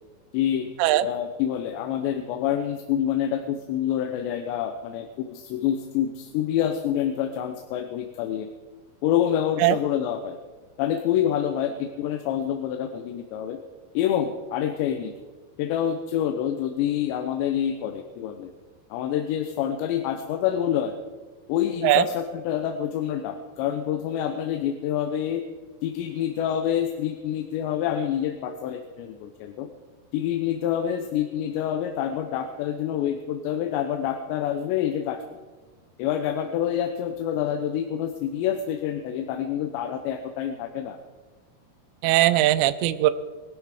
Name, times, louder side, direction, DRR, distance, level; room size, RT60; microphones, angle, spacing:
voice 1, 0.3-0.7 1.0-8.5 9.0-10.4 10.8-13.6 13.9-15.1 15.6-18.5 18.9-21.0 21.5-25.4 25.8-29.7 30.1-35.2 36.0-41.0, left 10 dB, 85° left, 7 dB, 3.1 m, -27 dB
voice 2, 42.0-43.1, right 15 dB, 85° right, 14 dB, 2.9 m, -19 dB
20.0 x 13.0 x 4.9 m, 1.4 s
omnidirectional pair, 5.0 m